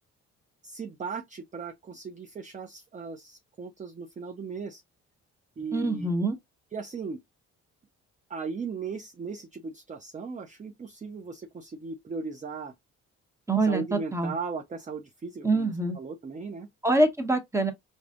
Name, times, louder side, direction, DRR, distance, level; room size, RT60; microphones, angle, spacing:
voice 1, 0.6-4.8 5.6-6.1 6.7-7.2 8.3-12.7 13.7-16.7, right 5 dB, 25° right, 0.5 m, -37 dB
voice 2, 5.7-6.3 13.5-14.3 15.4-16.0 16.8-17.7, right 2 dB, 10° right, 1.0 m, -25 dB
4.8 x 2.6 x 2.4 m
cardioid pair, 90°, 30 cm